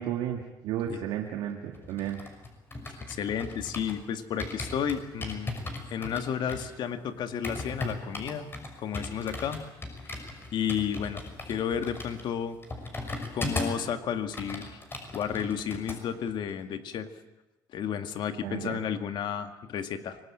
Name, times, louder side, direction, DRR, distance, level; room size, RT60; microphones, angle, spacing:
voice 1, 0.0-2.2 18.4-18.8, right 10 dB, 85° right, 2 dB, 2.1 m, -33 dB
sound 1, 1.7-4.0 4.4-13.9 14.2-16.0 16.3-16.5, left 2 dB, 25° left, 6.3 m, -37 dB
voice 2, 2.9-5.5 5.9-8.5 8.8-9.6 10.1-10.2 10.5-12.6 13.3-14.8 15.1-17.1 17.7-20.2, left 8 dB, 65° left, 8 dB, 2.1 m, -32 dB
24.5 x 19.5 x 8.8 m, 0.99 s
cardioid pair, 90°, 8 cm